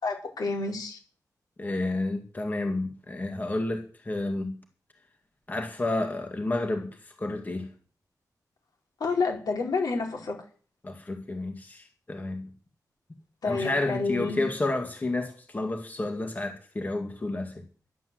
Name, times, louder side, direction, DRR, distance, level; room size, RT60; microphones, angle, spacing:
voice 1, 0.0-1.0 9.0-10.4 13.4-14.4, left 4 dB, 75° left, 4.7 m, -29 dB
voice 2, 1.6-4.6 5.5-7.7 10.8-12.5 13.5-17.6, left 2 dB, 25° left, 2.1 m, -31 dB
12.0 x 11.0 x 7.8 m
wide cardioid pair, 150°, 7 cm